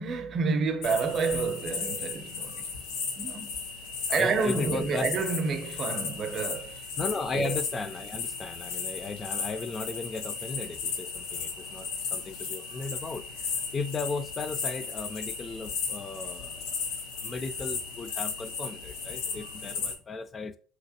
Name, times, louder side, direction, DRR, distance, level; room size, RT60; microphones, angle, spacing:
voice 1, 0.0-2.7 3.1-3.5 4.1-6.8 7.3-7.6, right 4 dB, 40° right, 0.6 m, -29 dB
sound 1, 0.8-19.9, left 5 dB, 80° left, 1.0 m, -35 dB
voice 2, 4.1-5.1 7.0-13.2 13.7-16.7 17.2-20.6, left 3 dB, 25° left, 0.3 m, -35 dB
3.3 x 2.9 x 2.8 m
supercardioid pair, 115°, 0 cm